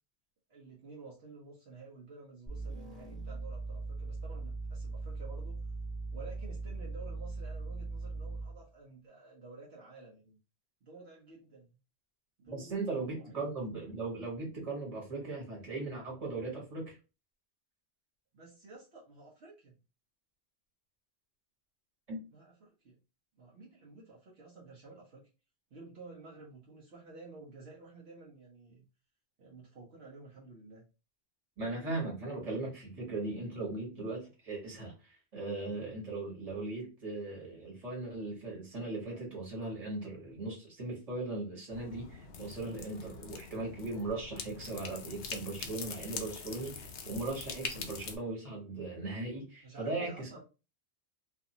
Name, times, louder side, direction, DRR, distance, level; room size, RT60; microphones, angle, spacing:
voice 1, 0.5-5.7 6.1-10.4 10.8-11.7 12.4-13.4 18.3-19.7 22.3-23.0 23.4-25.3 25.7-28.9 29.4-30.9 49.6-50.4, right 3 dB, 65° right, 1.0 m, -52 dB
sound 1, 2.5-8.6, right 3 dB, ahead, 0.8 m, -40 dB
voice 2, 12.5-17.0 22.1-22.2 31.6-50.4, right 2 dB, 35° right, 1.2 m, -38 dB
sound 2, 41.7-48.2, left 5 dB, 60° left, 0.6 m, -43 dB
2.5 x 2.5 x 2.6 m
omnidirectional pair, 1.2 m